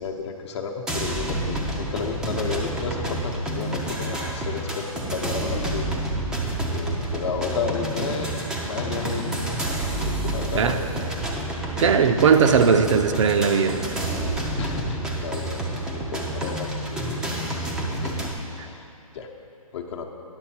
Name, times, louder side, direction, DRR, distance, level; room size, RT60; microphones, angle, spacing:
voice 1, 0.0-5.9 6.7-8.4 8.6-9.4 10.0-11.1 14.5-17.7 17.9-18.1 18.5-18.8 19.1-19.3 19.7-20.1, left 6 dB, 50° left, 2 dB, 0.9 m, -32 dB
sound 1, 0.9-18.3, right 1 dB, 5° right, 0.5 m, -29 dB
voice 2, 11.8-13.8, right 6 dB, 55° right, 7 dB, 0.6 m, -18 dB
10.5 x 7.0 x 4.4 m, 2.6 s
hypercardioid pair, 145°, 19 cm